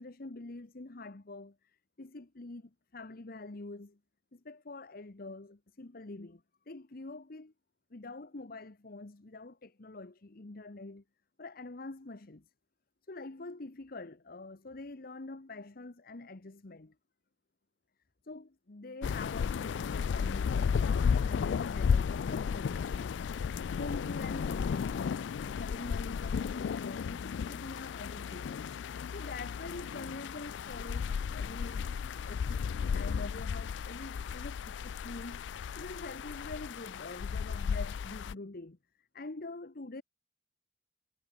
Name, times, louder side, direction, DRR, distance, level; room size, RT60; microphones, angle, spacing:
voice 1, 0.0-1.6 2.0-4.0 4.3-7.5 7.9-11.0 11.4-12.4 13.1-16.9 18.2-23.1 23.8-28.6 29.1-31.9 32.2-35.4 35.8-40.0, left 2 dB, 55° left, 1.0 m, -45 dB
sound 1, 19.0-38.3, left 6 dB, 75° left, 0.3 m, -34 dB
head